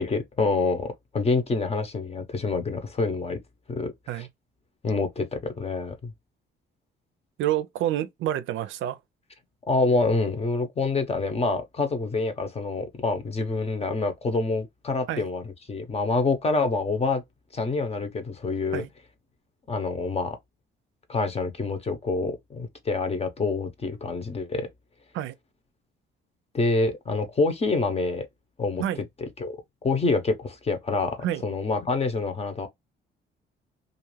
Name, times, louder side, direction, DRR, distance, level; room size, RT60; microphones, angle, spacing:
voice 1, 0.0-3.4 3.7-4.3 4.8-6.1 9.7-17.2 17.5-18.8 19.7-20.4 21.1-24.7 26.5-28.3 28.6-28.8 29.4-29.5 29.8-32.7, left 3 dB, 30° left, 0.8 m, -26 dB
voice 2, 7.4-9.0 15.1-15.2 18.7-18.9 25.1-25.3 28.8-29.0 31.2-31.4, right 12 dB, 80° right, 0.4 m, -28 dB
2.5 x 2.3 x 3.1 m
cardioid pair, 90°, 20 cm